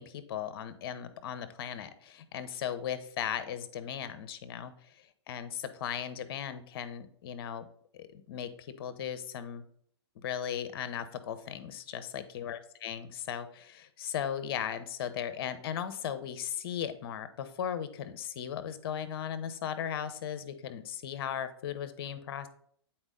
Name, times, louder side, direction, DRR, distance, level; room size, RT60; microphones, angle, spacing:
voice 1, 0.0-7.6 7.9-9.6 10.2-22.5, left 9 dB, 55° left, 11 dB, 0.7 m, -37 dB
7.9 x 4.3 x 3.8 m, 0.63 s
hypercardioid pair, 115°, 15 cm